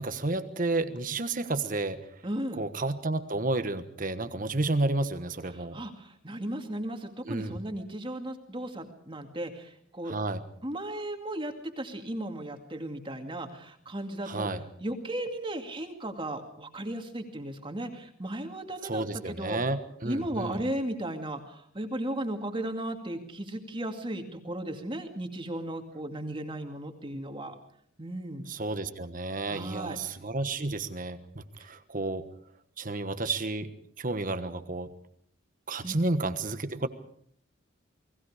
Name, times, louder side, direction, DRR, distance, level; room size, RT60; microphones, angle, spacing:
voice 1, 0.0-2.1 2.6-5.8 7.2-7.6 10.0-10.4 14.2-14.6 18.8-20.6 28.5-32.2 32.8-33.7 34.0-34.9 35.7-36.9, right 2 dB, 40° right, 10 dB, 1.3 m, -31 dB
voice 2, 2.2-2.6 5.5-10.1 10.6-14.5 14.8-19.6 20.0-27.5 28.0-28.4 29.5-30.0 35.8-36.0, right 1 dB, 25° right, 4 dB, 2.3 m, -35 dB
29.5 x 20.0 x 5.0 m, 0.63 s
head